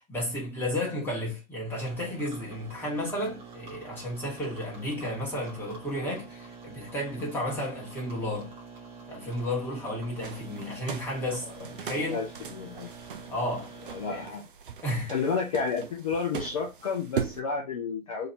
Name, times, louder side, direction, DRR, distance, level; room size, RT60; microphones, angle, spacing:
voice 1, 0.0-8.5 9.1-12.2 13.3-13.7 14.1-14.2 14.8-15.1, left 1 dB, 5° left, 1.3 m, -33 dB
sound 1, 1.7-14.3, right 4 dB, 15° right, 0.9 m, -47 dB
sound 2, 10.2-17.4, right 7 dB, 40° right, 0.4 m, -39 dB
voice 2, 12.1-12.9 13.9-14.4 15.1-18.3, left 5 dB, 25° left, 0.5 m, -31 dB
2.8 x 2.8 x 4.3 m
figure-of-eight pair, 125°, 43 cm